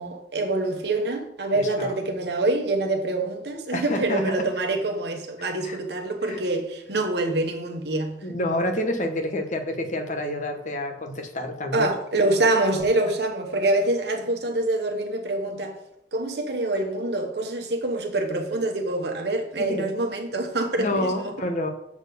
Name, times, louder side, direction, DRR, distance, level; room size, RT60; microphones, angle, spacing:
voice 1, 0.0-8.2 11.7-15.8 16.1-21.3, right 2 dB, 70° right, 1.1 m, -25 dB
voice 2, 1.5-2.0 3.7-4.2 5.4-5.8 6.3-6.4 8.2-11.9 19.7-19.9 20.8-21.7, left 1 dB, 45° left, 1.1 m, -28 dB
7.1 x 4.4 x 6.7 m
head